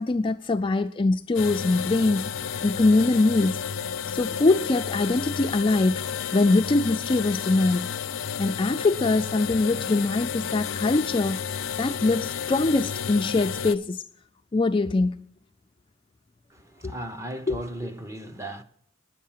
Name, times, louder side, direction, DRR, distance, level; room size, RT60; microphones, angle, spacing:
voice 1, 0.0-2.3 2.6-3.6 4.1-6.0 6.3-7.9 8.4-14.0 14.5-15.3 16.8-16.9 17.5-17.6, left 3 dB, 25° left, 0.4 m, -23 dB
sound 1, 1.3-13.7, left 7 dB, 85° left, 0.5 m, -32 dB
voice 2, 16.5-18.6, right 1 dB, 15° right, 0.8 m, -36 dB
10.0 x 8.6 x 7.3 m
head